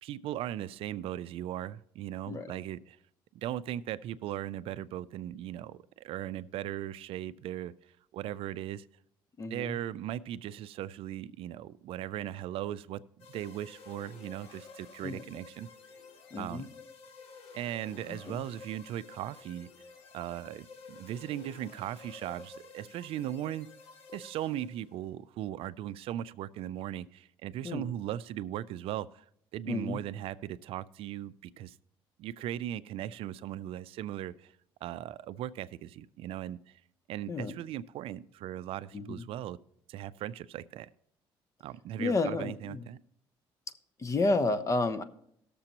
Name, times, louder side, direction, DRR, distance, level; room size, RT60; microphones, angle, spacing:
voice 1, 0.0-3.0 3.3-7.7 8.1-8.9 9.5-13.0 13.3-15.7 16.4-16.7 17.5-19.7 20.1-23.7 24.1-29.2 29.5-31.7 32.2-34.5 34.8-36.8 37.1-39.6 39.9-40.9 41.6-43.0, right 12 dB, 75° right, 0.4 m, -38 dB
voice 2, 9.4-9.7 15.0-15.2 16.3-16.7 18.1-18.4 27.6-27.9 29.7-30.0 37.3-37.5 38.9-39.2 42.0-42.9 44.0-45.0, left 3 dB, 35° left, 0.9 m, -31 dB
sound 1, 13.2-25.0, left 4 dB, 85° left, 1.7 m, -52 dB
19.0 x 6.8 x 2.9 m
cardioid pair, 90°, 10 cm